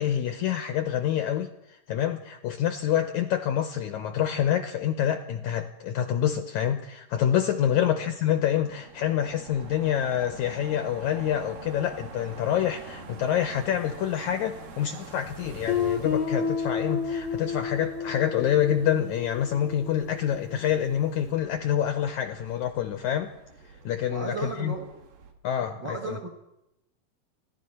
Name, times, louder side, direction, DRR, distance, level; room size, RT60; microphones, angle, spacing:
voice 1, 0.0-23.3 23.9-24.8 25.4-26.2, left 10 dB, 80° left, 7 dB, 1.8 m, -27 dB
sound 1, 8.0-25.3, right 3 dB, 80° right, 3.4 m, -46 dB
Guitar, 15.7-20.3, left 6 dB, 45° left, 1.0 m, -31 dB
voice 2, 24.1-24.9 25.8-26.3, right 4 dB, 50° right, 2 dB, 1.3 m, -35 dB
29.0 x 11.5 x 4.3 m, 0.87 s
omnidirectional pair, 4.1 m